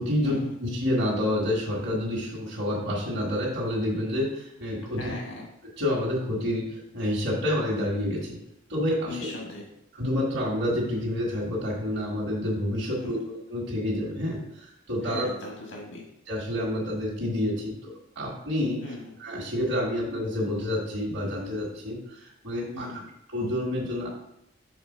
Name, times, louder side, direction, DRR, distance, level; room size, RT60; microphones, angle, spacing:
voice 1, 0.0-5.1 5.8-8.4 8.7-9.3 10.0-15.3 16.3-18.8 19.2-22.9 23.3-24.1, left 1 dB, 60° right, -4 dB, 1.5 m, -28 dB
voice 2, 4.8-5.5 9.1-9.6 12.9-13.3 15.0-16.0 18.8-19.2 22.7-23.0, left 2 dB, 85° left, -1 dB, 1.3 m, -39 dB
5.8 x 3.6 x 5.4 m, 0.80 s
head